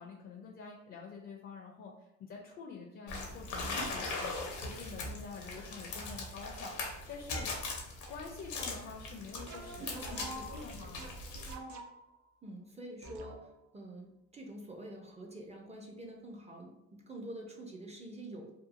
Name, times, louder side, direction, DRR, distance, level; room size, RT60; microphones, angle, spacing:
voice 1, 0.0-7.5 8.1-11.2, left 5 dB, 45° left, 1 dB, 0.4 m, -47 dB
sound 1, 3.1-11.5, left 2 dB, 80° left, 0.7 m, -40 dB
sound 2, 9.3-12.2 13.0-13.7, right 2 dB, 80° right, 0.5 m, -46 dB
voice 2, 12.4-13.5 13.7-18.5, right 1 dB, 20° right, 0 dB, 0.4 m, -46 dB
2.8 x 2.2 x 2.5 m, 0.90 s
cardioid pair, 100°, 30 cm